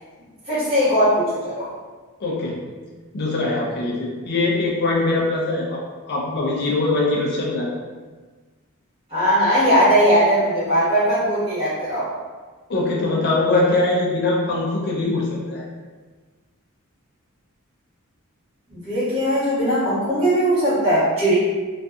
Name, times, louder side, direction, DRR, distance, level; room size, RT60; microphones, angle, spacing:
voice 1, 0.5-1.7 9.1-12.1 18.7-21.3, equal, 25° right, -11 dB, 1.3 m, -19 dB
voice 2, 2.2-2.6 3.1-5.8 6.1-7.7 12.7-15.6, left 2 dB, 50° left, -3 dB, 0.4 m, -22 dB
2.6 x 2.3 x 2.3 m, 1.4 s
head